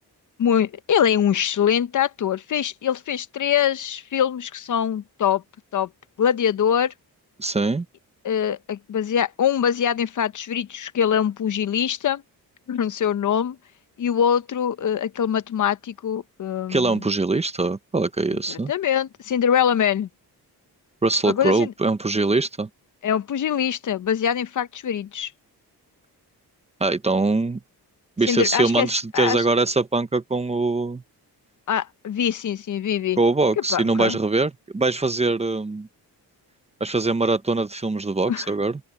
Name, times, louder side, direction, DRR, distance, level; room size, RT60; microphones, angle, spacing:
voice 1, 0.4-5.4 5.7-5.9 6.2-6.9 8.2-12.2 12.7-13.6 14.0-17.0 18.5-20.1 21.3-21.7 23.0-25.3 28.3-28.9 29.1-29.4 31.7-33.2 33.7-34.2 38.3-38.5, left 8 dB, 50° left, 0.7 m, -23 dB
voice 2, 7.4-7.8 16.7-18.7 21.0-22.7 26.8-27.6 28.2-31.0 33.2-35.9 36.8-38.8, right 3 dB, 15° right, 0.7 m, -22 dB
open air
wide cardioid pair, 160°, 38 cm